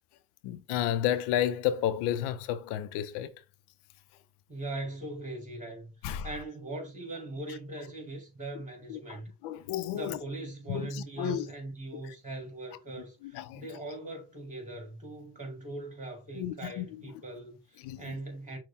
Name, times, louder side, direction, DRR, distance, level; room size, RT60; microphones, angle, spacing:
voice 1, 0.4-3.3 6.0-6.3 8.9-10.2 10.7-11.5 11.9-12.1 13.2-13.6 16.4-16.9 17.8-18.1, left 11 dB, 80° left, 0.7 m, -32 dB
voice 2, 4.5-9.3 9.9-18.6, right 2 dB, 20° right, 3.0 m, -40 dB
6.2 x 2.3 x 3.6 m
cardioid pair, 90°, 39 cm